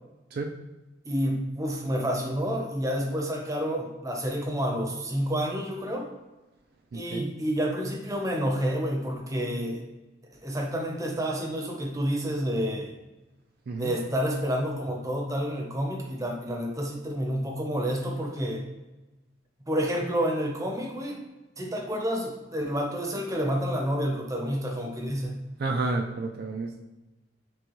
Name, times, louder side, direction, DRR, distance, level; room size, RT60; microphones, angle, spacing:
voice 1, 1.0-6.1 6.9-9.8 10.4-12.9 13.7-18.6 19.7-21.2 21.6-25.4, equal, 20° right, 1 dB, 0.7 m, -29 dB
voice 2, 6.9-7.3 13.7-13.9 25.6-26.8, right 3 dB, 55° right, 3 dB, 0.3 m, -30 dB
6.1 x 2.2 x 3.0 m, 1.1 s
head